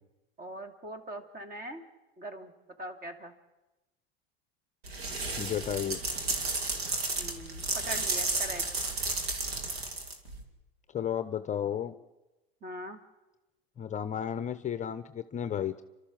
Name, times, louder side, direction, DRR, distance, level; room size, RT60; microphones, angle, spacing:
voice 1, 0.4-1.8 2.2-2.5 2.8-3.3 7.2-8.6 12.6-13.0, right 1 dB, 30° right, 8 dB, 2.5 m, -41 dB
sound 1, 4.8-10.4, right 3 dB, 85° right, 3.0 m, -32 dB
voice 2, 5.4-6.0 10.9-11.9 13.8-15.8, left 9 dB, 25° left, 12 dB, 0.7 m, -33 dB
29.0 x 12.5 x 7.4 m, 1.1 s
hypercardioid pair, 95°, 30 cm